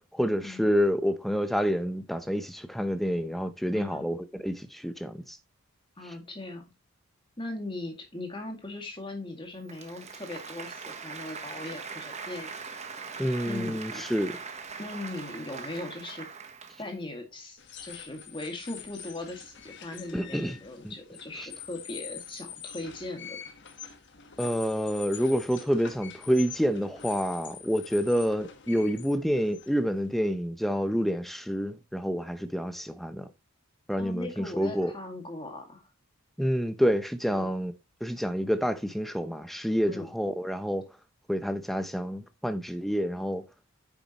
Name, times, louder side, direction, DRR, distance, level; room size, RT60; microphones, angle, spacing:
voice 1, 0.1-5.4 13.2-14.3 20.1-20.6 20.8-20.9 24.4-33.3 33.9-34.9 36.4-37.7 38.0-40.9 41.3-43.4, equal, ahead, 0.7 m, -28 dB
voice 2, 3.7-4.1 6.0-6.6 7.4-12.5 13.0-14.0 14.8-16.3 16.8-23.4 34.0-35.8 37.3-37.5 39.8-40.1, left 2 dB, 20° left, 2.1 m, -39 dB
Applause, 9.6-17.0, right 5 dB, 30° right, 1.1 m, -41 dB
sound 1, 17.6-30.3, left 8 dB, 55° left, 1.4 m, -45 dB
9.6 x 7.1 x 3.0 m
head